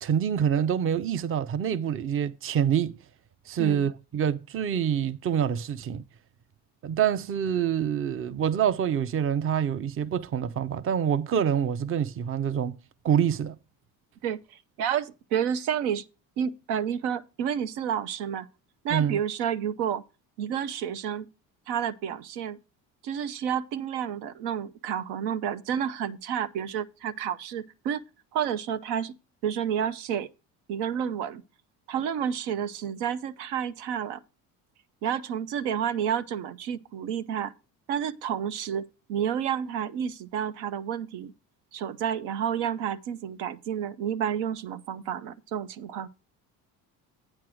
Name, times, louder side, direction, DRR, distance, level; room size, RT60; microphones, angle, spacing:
voice 1, 0.0-2.9 3.5-6.0 6.8-12.8 13.0-13.6 18.9-19.2, right 8 dB, 35° right, 0.5 m, -26 dB
voice 2, 3.6-3.9 14.2-16.1 16.4-18.5 18.8-20.0 20.4-21.3 21.7-22.6 23.0-28.0 28.3-29.1 29.4-30.3 30.7-31.4 31.9-34.2 35.0-37.5 37.9-41.3 41.7-46.1, right 8 dB, 90° right, 0.7 m, -30 dB
8.7 x 4.6 x 6.2 m
supercardioid pair, 90°, 39 cm